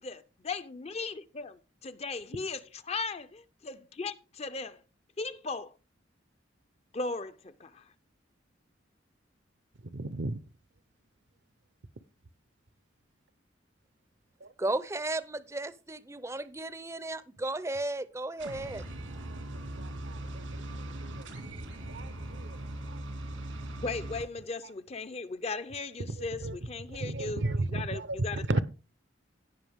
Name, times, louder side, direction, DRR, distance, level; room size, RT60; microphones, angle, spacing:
voice 1, 0.0-1.6 2.0-4.8 5.2-5.7 6.9-7.9 23.8-28.6, left 3 dB, 35° left, 0.6 m, -37 dB
voice 2, 9.9-10.4 14.4-14.5 19.3-19.4 19.8-20.6 21.0-21.3 21.9-22.6 22.9-23.0 26.1-26.2 26.4-26.6 26.9-28.2 28.5-28.6, right 2 dB, 70° right, 0.7 m, -34 dB
voice 3, 14.6-18.8, right 2 dB, 15° right, 0.5 m, -34 dB
sound 1, 18.4-24.2, right 1 dB, 90° right, 2.3 m, -40 dB
17.0 x 5.7 x 3.5 m
head